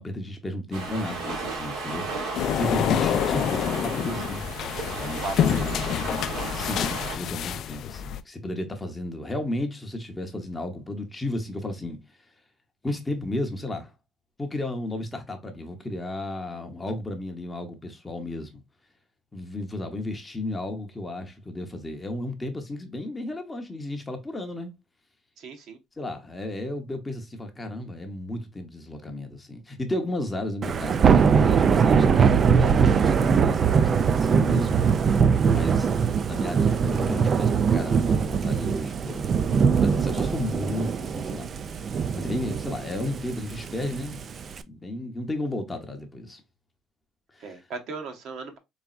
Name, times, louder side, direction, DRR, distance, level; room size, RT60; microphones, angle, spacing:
voice 1, 0.0-4.5 4.9-5.9 6.2-12.0 12.8-13.9 14.4-18.6 19.3-24.7 26.0-35.2 35.5-35.9 36.2-41.5 42.2-44.2 44.7-46.4 47.3-47.6, left 1 dB, 15° left, 0.7 m, -33 dB
sound 1, 0.7-7.2, right 3 dB, 85° right, 2.1 m, -34 dB
sound 2, 2.3-8.2, left 9 dB, 55° left, 0.3 m, -27 dB
voice 2, 5.2-5.8 25.4-25.8 47.4-48.6, right 4 dB, 60° right, 0.9 m, -36 dB
Thunder / Rain, 30.6-44.6, right 6 dB, 35° right, 0.3 m, -22 dB
4.0 x 3.4 x 2.3 m
cardioid pair, 150°, 0 cm